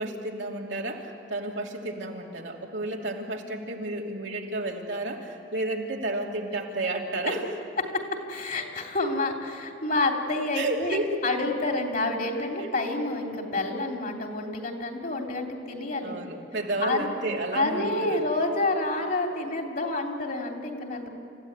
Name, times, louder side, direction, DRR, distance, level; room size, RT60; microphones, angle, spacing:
voice 1, 0.0-7.4 10.5-11.1 16.0-18.2, right 2 dB, 85° right, -1 dB, 2.9 m, -31 dB
voice 2, 8.3-16.2 16.8-17.1 17.5-21.1, left 2 dB, 50° left, 2 dB, 3.1 m, -28 dB
28.5 x 15.5 x 9.6 m, 2.5 s
head